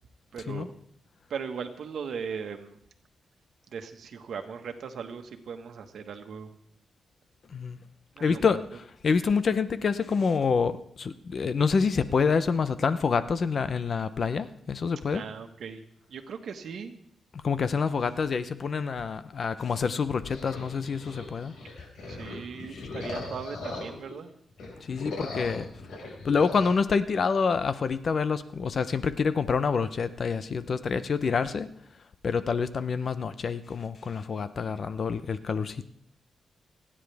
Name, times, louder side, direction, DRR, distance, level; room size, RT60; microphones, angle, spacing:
voice 1, 0.3-0.8 1.3-2.8 3.7-6.6 8.1-8.4 15.1-15.8 16.1-17.0 22.1-24.3, right 6 dB, 70° right, 5 dB, 1.5 m, -38 dB
voice 2, 8.2-8.6 9.0-15.2 17.3-21.5 22.8-22.9 24.8-25.7 26.2-31.7 32.2-35.8, left 5 dB, 45° left, 13 dB, 0.7 m, -27 dB
sound 1, 20.3-24.2 24.5-26.7, left 3 dB, 85° left, 5.4 m, -39 dB
29.5 x 10.0 x 3.5 m, 0.70 s
wide cardioid pair, 140°, 0 cm